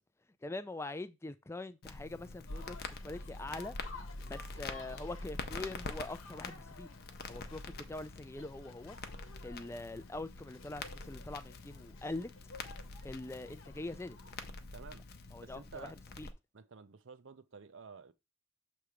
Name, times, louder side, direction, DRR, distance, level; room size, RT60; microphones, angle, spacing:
voice 1, 0.4-2.8 3.0-3.8 4.3-6.9 7.3-9.0 9.4-12.3 13.0-14.2 15.3-16.3, left 2 dB, 15° left, 0.4 m, -43 dB
Crackle, 1.8-16.3, left 3 dB, 50° left, 0.7 m, -46 dB
sound 1, 2.5-14.5, left 4 dB, 70° left, 1.0 m, -55 dB
voice 2, 14.7-16.0 16.5-18.1, right 5 dB, 60° right, 0.6 m, -52 dB
6.8 x 3.2 x 4.9 m
head